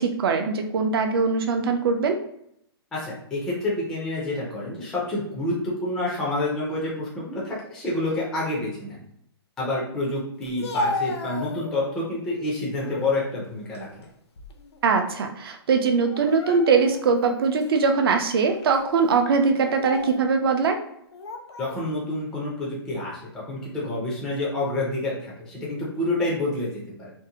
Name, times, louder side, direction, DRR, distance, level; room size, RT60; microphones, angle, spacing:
voice 1, 0.0-2.2 14.8-20.8, right 5 dB, 60° right, 6 dB, 0.4 m, -22 dB
voice 2, 2.9-9.0 9.6-13.9 21.6-27.1, left 2 dB, 5° left, -6 dB, 0.3 m, -28 dB
Speech, 10.4-12.1 12.6-13.1 13.6-14.8 15.1-15.3 16.1-17.0 17.6-17.7 18.5-18.8 19.6-20.3 21.1-21.8, left 3 dB, 85° left, 0.5 m, -33 dB
2.6 x 2.0 x 2.7 m, 0.74 s
hypercardioid pair, 165°, 14 cm